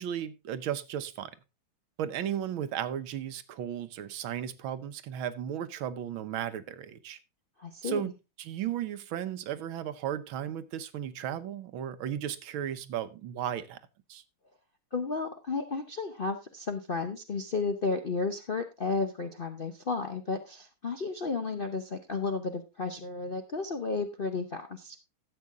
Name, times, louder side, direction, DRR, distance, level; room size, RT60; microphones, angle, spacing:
voice 1, 0.0-1.3 2.0-7.2 7.8-8.1 8.4-13.8 14.1-14.2, right 10 dB, 75° right, 1.6 m, -35 dB
voice 2, 7.6-8.0 14.9-25.0, left 4 dB, 65° left, 0.5 m, -33 dB
12.5 x 8.1 x 3.5 m
omnidirectional pair, 2.3 m